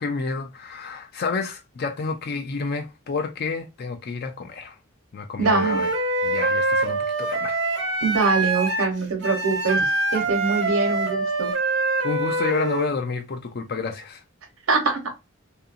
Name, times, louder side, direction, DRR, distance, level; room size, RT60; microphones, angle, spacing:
voice 1, 0.0-4.8 5.1-5.9 6.2-7.6 12.0-14.2, left 4 dB, 50° left, 0.4 m, -29 dB
Wind instrument woodwind instrument, 5.4-12.9, right 2 dB, 55° right, 0.6 m, -24 dB
voice 2, 5.4-5.8 8.0-11.5 14.7-15.0, right 3 dB, 80° right, 1.0 m, -23 dB
2.8 x 2.5 x 2.5 m
head